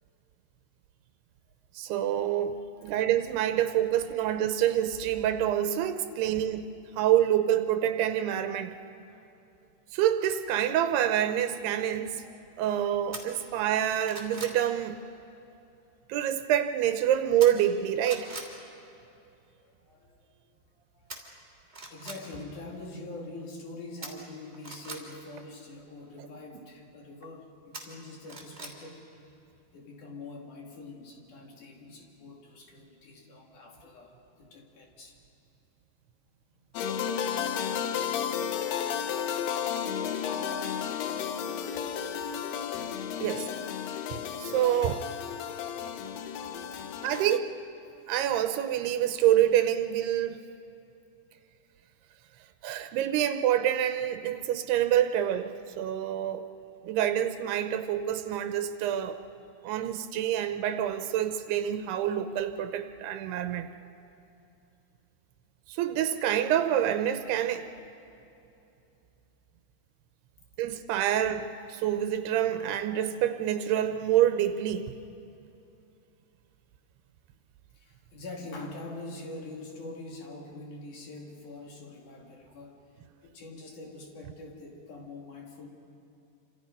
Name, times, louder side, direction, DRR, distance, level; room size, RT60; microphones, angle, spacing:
voice 1, 1.7-8.7 9.9-12.2 12.6-15.0 16.1-18.3 43.2-43.5 44.1-45.0 47.0-47.5 48.1-50.4 52.6-56.5 56.8-59.2 59.6-63.7 65.7-67.7 70.6-74.9, right 11 dB, 85° right, 9 dB, 2.8 m, -27 dB
voice 2, 9.0-9.3 11.7-12.4 19.6-20.3 20.7-21.2 21.9-29.1 29.7-35.2 41.7-41.9 42.2-42.3 42.7-43.0 46.5-46.9 59.6-59.7 77.7-82.8 83.2-85.7, left 2 dB, 55° left, 1 dB, 3.7 m, -45 dB
sound 1, 13.1-13.2 13.7-14.6 17.4-17.7 18.0-18.5 21.1-21.2 21.7-22.2 24.0-25.0 27.7-28.7 29.1-29.2, right 3 dB, 15° right, 2.7 m, -41 dB
sound 2, 36.8-47.4, left 8 dB, 80° left, 2.9 m, -33 dB
28.5 x 26.0 x 5.4 m, 2.8 s
omnidirectional pair, 4.6 m